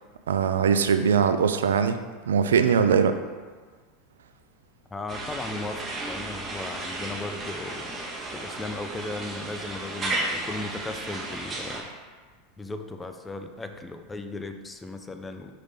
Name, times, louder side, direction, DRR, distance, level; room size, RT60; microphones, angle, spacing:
voice 1, 0.3-2.0 2.3-3.2, right 7 dB, 85° right, 9 dB, 0.4 m, -21 dB
voice 2, 4.9-8.0 8.3-11.9 12.6-15.5, left 2 dB, 15° left, 7 dB, 0.5 m, -36 dB
sound 1, 5.1-11.8, right 2 dB, 25° right, 1.3 m, -34 dB
5.7 x 5.0 x 3.6 m, 1.4 s
hypercardioid pair, 95°, 0 cm